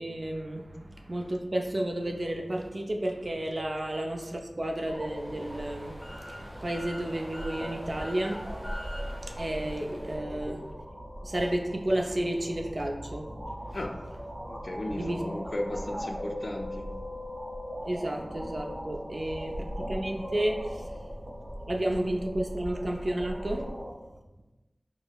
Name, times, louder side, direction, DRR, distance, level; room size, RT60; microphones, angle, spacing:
voice 1, 0.0-8.4 9.1-10.7 11.2-13.3 13.6-13.8 14.8-15.5 17.8-21.1 21.6-23.7 24.1-24.2, right 1 dB, 55° right, 2 dB, 0.4 m, -32 dB
sound 1, 4.8-23.9, equal, 85° right, 0.8 m, -39 dB
sound 2, 4.9-10.2, equal, ahead, 0.7 m, -45 dB
voice 2, 14.5-16.9, left 1 dB, 65° left, 3 dB, 0.3 m, -35 dB
4.8 x 2.0 x 2.2 m, 1.0 s
wide cardioid pair, 55°, 0 cm